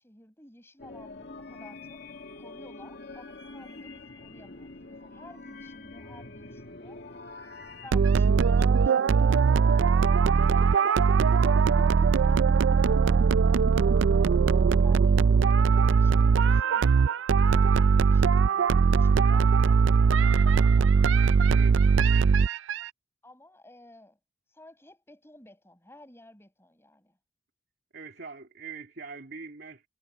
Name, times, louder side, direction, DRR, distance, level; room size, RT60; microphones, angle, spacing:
voice 1, 0.0-2.0 2.4-7.0 7.8-9.9 10.5-12.9 14.8-15.2 15.6-20.9 23.2-24.2 24.5-27.2, left 1 dB, 15° left, 6.2 m, -53 dB
sound 1, 0.8-7.9, left 3 dB, 60° left, 2.4 m, -45 dB
sound 2, 7.9-22.8, right 5 dB, 80° right, 0.4 m, -21 dB
voice 2, 21.5-22.0 27.9-29.8, right 4 dB, 60° right, 2.9 m, -43 dB
head